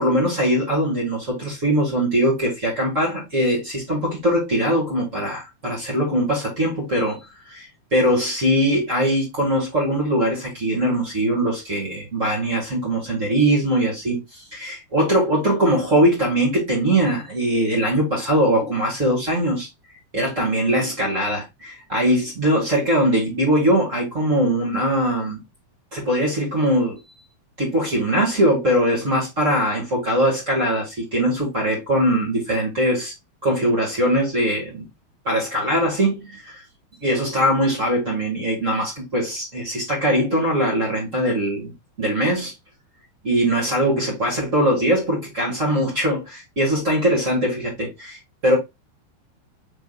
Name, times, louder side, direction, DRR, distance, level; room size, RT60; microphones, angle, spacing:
voice 1, 0.0-19.7 20.1-25.4 25.9-27.0 27.6-33.1 33.4-34.8 35.2-36.6 37.0-41.7 42.0-42.5 43.2-48.5, equal, 40° right, 1.1 m, -21 dB
6.0 x 3.6 x 2.3 m
omnidirectional pair, 4.5 m